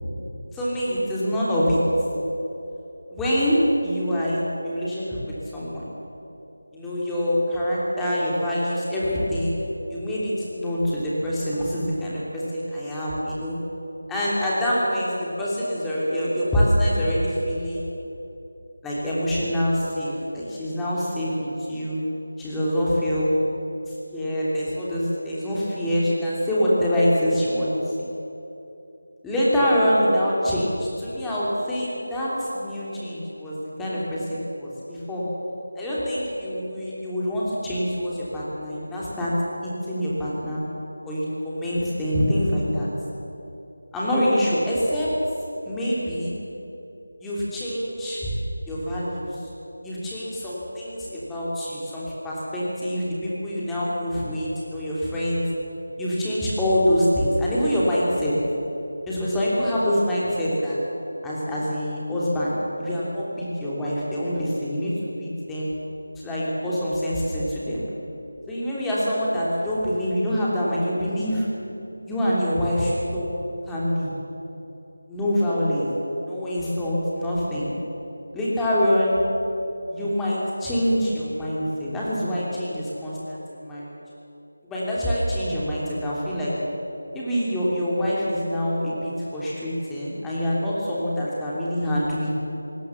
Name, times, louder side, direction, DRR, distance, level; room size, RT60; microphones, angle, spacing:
voice 1, 0.5-1.8 3.1-5.9 6.7-9.6 9.9-13.6 14.1-17.9 18.8-22.0 22.4-23.3 23.9-28.1 29.2-35.3 35.7-39.3 39.6-40.6 41.0-42.9 43.9-45.1 45.6-46.3 47.2-48.3 48.7-49.4 49.8-55.4 56.0-58.4 59.0-60.8 61.2-62.5 62.8-64.9 65.2-65.7 66.1-67.8 68.5-71.5 72.0-73.3 73.7-74.1 75.1-75.9 76.2-77.7 78.3-79.2 79.9-83.9 84.6-86.5 87.1-92.3, equal, 5° left, -8 dB, 3.1 m, -25 dB
23.5 x 18.0 x 7.2 m, 3.0 s
figure-of-eight pair, 165°, 0 cm